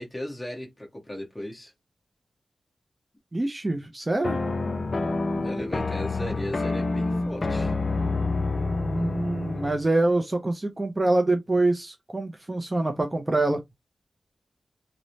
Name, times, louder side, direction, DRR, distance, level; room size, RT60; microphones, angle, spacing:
voice 1, 0.0-1.7 5.4-7.7, left 1 dB, 15° left, 1.0 m, -36 dB
voice 2, 3.3-4.4 8.5-13.6, right 2 dB, 25° right, 0.4 m, -25 dB
sound 1, 4.2-9.8, left 3 dB, 45° left, 0.5 m, -27 dB
3.0 x 2.0 x 2.6 m
wide cardioid pair, 90°, 0 cm